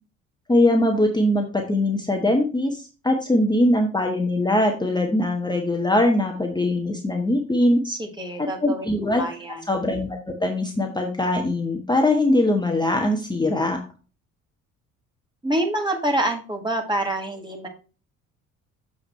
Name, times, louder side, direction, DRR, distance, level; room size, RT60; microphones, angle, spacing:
voice 1, 0.5-7.8 8.4-9.2 9.7-13.8, left 1 dB, 10° left, 2 dB, 1.2 m, -21 dB
voice 2, 7.8-9.6 15.4-17.7, right 1 dB, 10° right, 2 dB, 1.7 m, -27 dB
7.0 x 4.8 x 4.4 m, 0.34 s
figure-of-eight pair, 50°, 40 cm